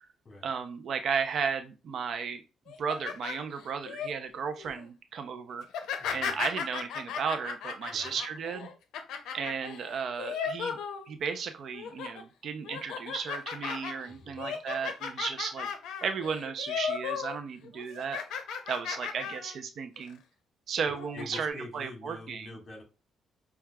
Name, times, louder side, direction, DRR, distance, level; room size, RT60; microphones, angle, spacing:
voice 1, 0.4-2.4 2.8-5.7 6.1-8.7 9.3-10.8 11.1-15.7 16.0-18.2 18.7-20.2 20.7-22.5, right 6 dB, 60° right, 8 dB, 0.4 m, -34 dB
sound 1, 2.7-4.1 4.6-4.9 5.6-11.4 11.7-12.2 12.6-17.4 17.6-19.6 20.0-20.1 20.8-21.4, left 7 dB, 85° left, 0.5 m, -36 dB
voice 2, 6.0-6.5 7.9-8.2 14.0-14.6 21.1-22.8, left 2 dB, 40° left, 1 dB, 1.4 m, -46 dB
5.8 x 2.3 x 2.2 m, 0.31 s
cardioid pair, 90°, 0 cm